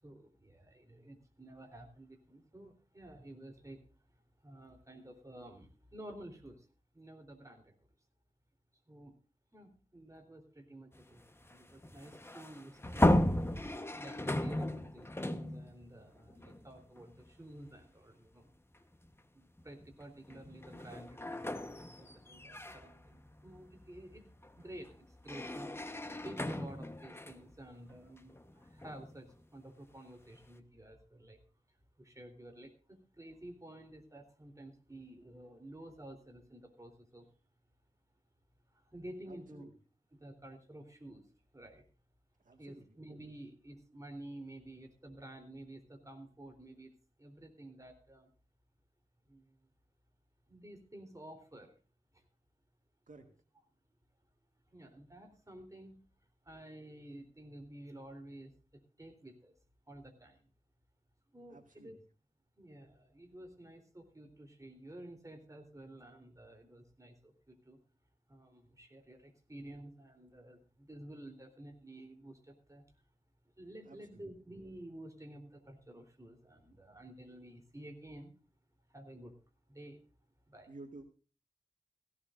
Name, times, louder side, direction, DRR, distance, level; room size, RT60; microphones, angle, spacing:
voice 1, 0.0-3.9 4.4-6.7 6.9-7.8 8.9-9.1 9.5-13.2 13.9-18.5 19.3-24.3 24.6-25.7 26.2-31.4 32.0-37.3 38.7-39.6 40.1-41.2 41.5-41.8 42.6-46.9 47.2-48.3 49.3-49.6 50.5-51.7 52.1-52.2 54.7-56.1 56.4-58.5 59.0-59.5 59.9-60.5 61.3-62.0 62.6-67.8 68.3-72.8 73.6-78.3 78.9-79.4 79.7-80.1 80.5-80.7, right 1 dB, 25° right, 4 dB, 3.6 m, -52 dB
sound 1, 10.9-17.3 17.7-17.8 18.9-19.1 19.6-29.3, left 1 dB, 15° left, 1.1 m, -35 dB
voice 2, 39.3-39.7 42.4-43.0 53.1-53.3 61.5-61.9 73.9-74.2 80.7-81.0, right 2 dB, 70° right, 4 dB, 1.8 m, -53 dB
17.5 x 16.5 x 2.6 m, 0.35 s
wide cardioid pair, 85°, 14 cm